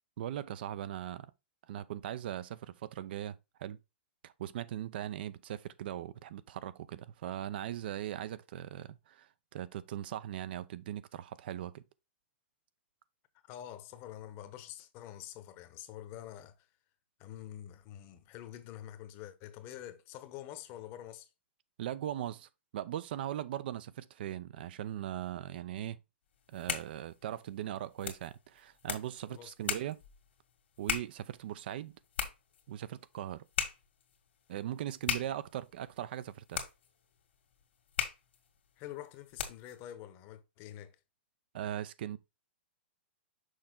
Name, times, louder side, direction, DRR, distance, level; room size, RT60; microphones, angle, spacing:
voice 1, 0.2-1.3 1.7-3.8 4.2-11.8 21.8-26.0 26.5-30.0 30.8-31.9 32.7-33.4 34.5-36.6 41.5-42.2, right 11 dB, 60° right, 0.5 m, -39 dB
voice 2, 13.5-16.7 17.2-21.3 29.3-29.8 38.8-40.9, left 12 dB, 35° left, 0.9 m, -47 dB
sound 1, 26.3-39.8, left 8 dB, 75° left, 1.9 m, -40 dB
6.4 x 4.3 x 3.7 m
hypercardioid pair, 140°, 6 cm